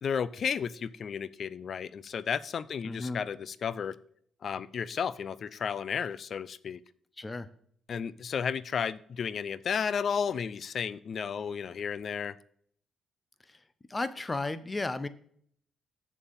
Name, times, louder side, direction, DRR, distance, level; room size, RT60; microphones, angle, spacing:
voice 1, 0.0-4.0 4.4-6.8 7.9-12.4, left 7 dB, 55° left, 18 dB, 0.5 m, -33 dB
voice 2, 2.8-3.2 7.2-7.5 13.5-13.6 13.9-15.1, left 2 dB, 20° left, 14 dB, 0.8 m, -34 dB
7.2 x 7.1 x 5.4 m, 0.63 s
cardioid pair, 90°, 0 cm